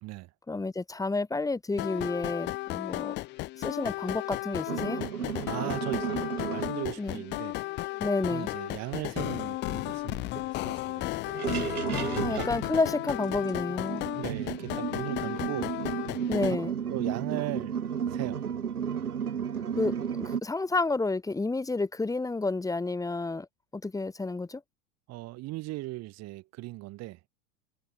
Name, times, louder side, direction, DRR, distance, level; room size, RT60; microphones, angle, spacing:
voice 1, 0.5-3.2 3.6-5.0 7.0-7.2 8.0-8.5 11.8-14.0 16.3-16.8 19.8-23.5 23.7-24.6, left 3 dB, 10° left, 2.0 m, -30 dB
sound 1, 1.8-16.5, left 18 dB, 25° left, 0.5 m, -34 dB
sound 2, 4.7-6.8 9.4-9.5 9.8-9.9 10.3-10.4 11.2-20.4, right 8 dB, 85° right, 0.7 m, -33 dB
voice 2, 5.5-7.5 8.3-11.1 12.0-12.5 14.1-15.7 16.9-17.8 18.1-18.4 25.1-27.2, right 19 dB, 35° right, 1.4 m, -38 dB
figure-of-eight pair, 85°, 44 cm